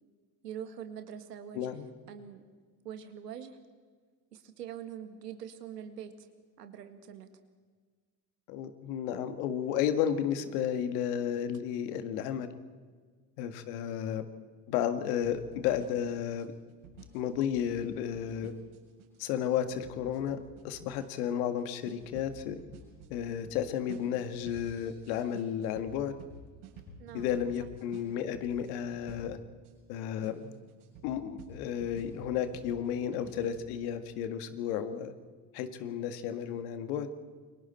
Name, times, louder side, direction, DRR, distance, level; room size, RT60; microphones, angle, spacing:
voice 1, 0.4-2.4 2.8-3.6 4.3-6.3 6.6-7.3 27.0-27.3, right 9 dB, 85° right, 8 dB, 1.9 m, -44 dB
voice 2, 1.5-1.8 8.5-12.5 13.4-14.2 14.7-16.5 17.1-18.5 19.2-20.4 20.6-22.6 23.1-26.1 27.1-29.4 29.9-30.4 31.0-35.1 35.5-37.1, left 9 dB, 70° left, 9 dB, 1.9 m, -32 dB
sound 1, 15.2-29.7 30.2-33.7, right 2 dB, 70° right, 7.7 m, -51 dB
29.0 x 24.5 x 4.4 m, 1.5 s
hypercardioid pair, 60°, 47 cm